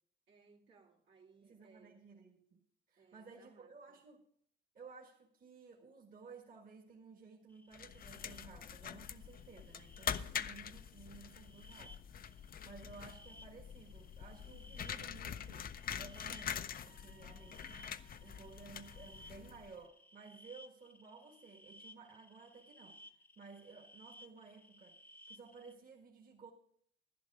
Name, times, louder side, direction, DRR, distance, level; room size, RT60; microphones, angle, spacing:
voice 1, 0.3-2.0 3.0-4.0, right 5 dB, 65° right, -3 dB, 2.2 m, -65 dB
voice 2, 1.4-2.6 2.9-4.3 4.7-15.7 16.0-17.9 18.2-25.0 25.3-26.5, right 4 dB, 45° right, 1 dB, 1.7 m, -56 dB
sound 1, 7.5-25.8, left 1 dB, 10° left, 0.8 m, -61 dB
sound 2, 7.7-19.8, left 8 dB, 45° left, 0.5 m, -45 dB
sound 3, 16.7-20.0, right 3 dB, 90° right, 1.2 m, -68 dB
11.0 x 11.0 x 4.8 m, 0.63 s
cardioid pair, 90°, 20 cm